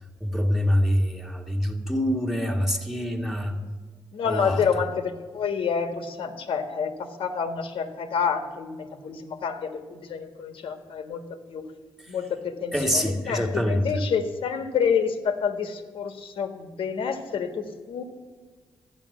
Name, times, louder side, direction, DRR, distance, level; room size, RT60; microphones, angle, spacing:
voice 1, 0.2-3.6 4.2-4.6 12.7-14.0, equal, 5° right, 4 dB, 1.7 m, -25 dB
voice 2, 4.1-11.2 11.5-11.6 12.1-18.0, left 6 dB, 80° left, 7 dB, 1.5 m, -28 dB
12.5 x 9.1 x 7.1 m, 1.4 s
cardioid pair, 110°, 9 cm